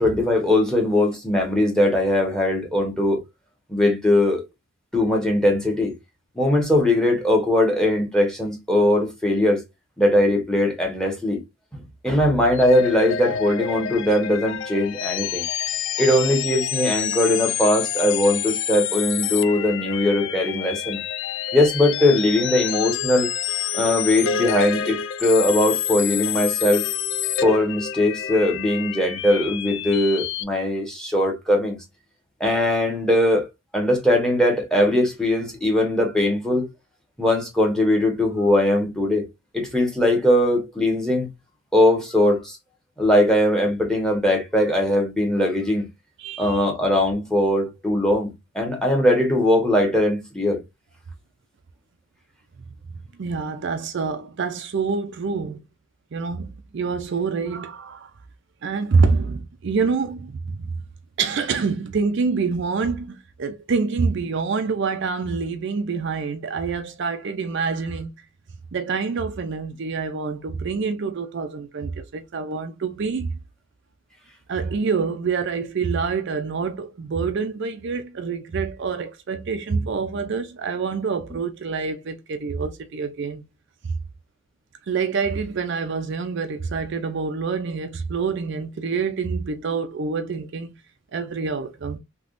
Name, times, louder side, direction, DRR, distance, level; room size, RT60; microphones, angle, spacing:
voice 1, 0.0-3.2 3.7-4.4 4.9-5.9 6.4-9.6 10.0-11.4 12.0-15.4 16.0-21.0 21.5-23.3 23.7-26.8 27.4-31.8 32.4-33.5 33.7-36.7 37.2-39.2 39.5-41.3 41.7-42.6 43.0-45.8 46.4-48.3 48.5-50.6, left 1 dB, 5° left, 1.1 m, -20 dB
sound 1, 12.5-30.4, left 9 dB, 60° left, 0.3 m, -28 dB
voice 2, 46.2-46.6 53.2-55.6 56.1-58.1 58.6-60.7 61.2-68.1 68.7-73.3 74.5-83.4 84.9-90.7 91.1-92.0, right 5 dB, 55° right, 0.4 m, -26 dB
3.4 x 2.9 x 2.5 m
head